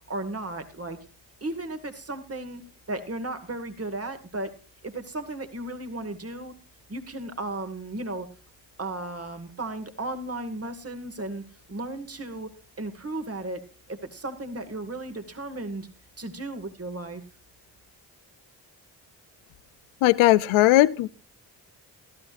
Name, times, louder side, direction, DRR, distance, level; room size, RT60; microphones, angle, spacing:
voice 1, 0.1-1.1 1.4-2.6 2.9-4.5 4.8-6.5 6.9-8.3 8.8-11.4 11.7-13.6 13.9-15.9 16.2-17.2, right 2 dB, 30° right, 8 dB, 2.2 m, -35 dB
voice 2, 20.0-21.1, left 16 dB, 85° left, 19 dB, 0.6 m, -18 dB
19.5 x 13.0 x 2.6 m, 0.34 s
supercardioid pair, 40°, 47 cm